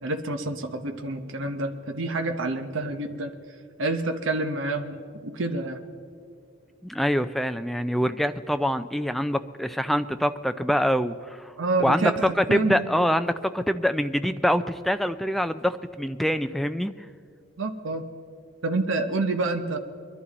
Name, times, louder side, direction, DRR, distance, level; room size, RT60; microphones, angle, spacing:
voice 1, 0.0-3.3 3.8-5.8 11.6-12.8 17.6-18.0 18.6-19.8, right 2 dB, 65° right, 6 dB, 0.9 m, -28 dB
voice 2, 6.8-11.5 11.8-16.9, equal, ahead, 10 dB, 0.3 m, -25 dB
22.5 x 11.5 x 4.1 m, 2.3 s
head